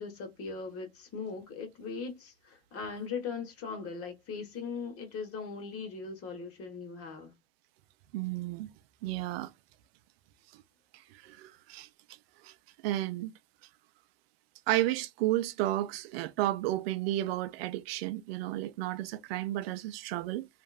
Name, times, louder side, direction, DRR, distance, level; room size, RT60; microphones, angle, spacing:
voice 1, 0.0-7.3, left 5 dB, 50° left, 1.4 m, -39 dB
voice 2, 8.1-8.7 9.0-9.5 11.1-11.9 12.4-12.5 12.8-13.3 14.7-20.5, right 15 dB, 85° right, 0.5 m, -32 dB
2.9 x 2.5 x 2.4 m
hypercardioid pair, 85°, 29 cm